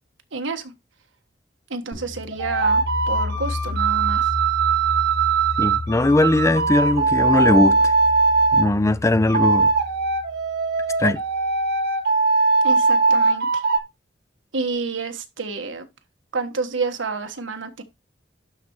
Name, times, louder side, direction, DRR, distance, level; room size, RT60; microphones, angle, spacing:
voice 1, 0.3-0.7 1.7-4.3 12.6-13.6 14.5-15.9 16.3-17.8, right 4 dB, 90° right, 1.4 m, -29 dB
sound 1, 1.9-11.5, left 3 dB, 80° left, 4.5 m, -33 dB
sound 2, 2.3-8.7 9.3-13.8, right 4 dB, 65° right, 1.4 m, -20 dB
voice 2, 5.6-7.9 8.5-9.7 11.0-11.2, left 2 dB, 15° left, 0.4 m, -19 dB
12.0 x 4.2 x 3.0 m
head